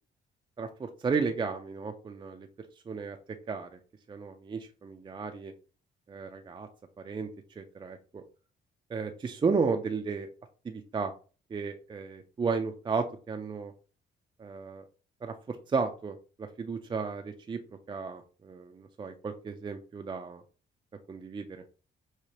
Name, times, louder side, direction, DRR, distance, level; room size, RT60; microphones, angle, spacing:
voice 1, 0.6-2.5 2.9-3.2 3.5-3.8 4.1-5.5 6.1-6.7 7.0-7.3 7.6-8.2 8.9-10.3 10.6-11.1 11.5-13.7 14.4-14.8 15.2-17.6 17.9-20.4 21.1-21.6, right 5 dB, 25° right, 5 dB, 0.4 m, -33 dB
4.7 x 2.4 x 2.8 m, 0.36 s
cardioid pair, 90°, 20 cm